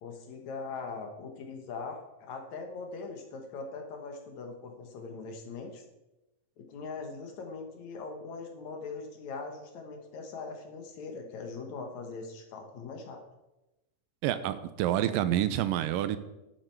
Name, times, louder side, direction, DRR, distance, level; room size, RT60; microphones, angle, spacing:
voice 1, 0.0-5.8 6.6-13.2, left 4 dB, 65° left, 3 dB, 2.3 m, -41 dB
voice 2, 14.2-16.2, right 12 dB, 85° right, 12 dB, 2.3 m, -28 dB
11.0 x 8.9 x 4.6 m, 0.97 s
omnidirectional pair, 3.9 m